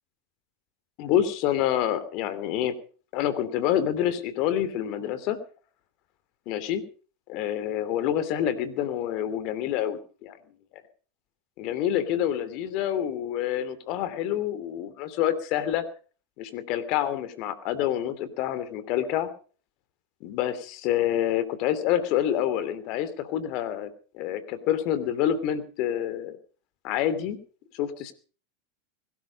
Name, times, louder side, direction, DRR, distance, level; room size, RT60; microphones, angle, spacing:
voice 1, 1.0-2.7 3.1-5.4 6.5-6.8 7.3-10.4 10.7-10.8 11.6-15.8 16.4-19.3 20.2-26.4 26.8-27.4 27.7-28.1, left 11 dB, 55° left, 14 dB, 2.9 m, -27 dB
21.0 x 12.5 x 5.2 m, 0.41 s
hypercardioid pair, 90°, 0 cm